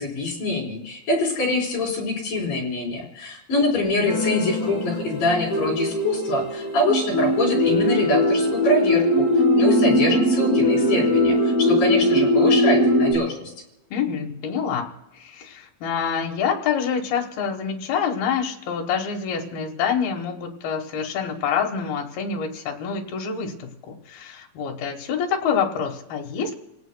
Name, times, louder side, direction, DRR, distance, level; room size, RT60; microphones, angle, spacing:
voice 1, 0.0-9.3 9.5-13.5, left 2 dB, 65° left, -3 dB, 6.0 m, -24 dB
sound 1, 4.1-13.1, left 1 dB, 20° left, 6.3 m, -20 dB
voice 2, 13.9-14.9 15.2-26.5, left 7 dB, 85° left, 2 dB, 3.3 m, -26 dB
29.5 x 17.0 x 2.3 m, 0.95 s
omnidirectional pair, 4.2 m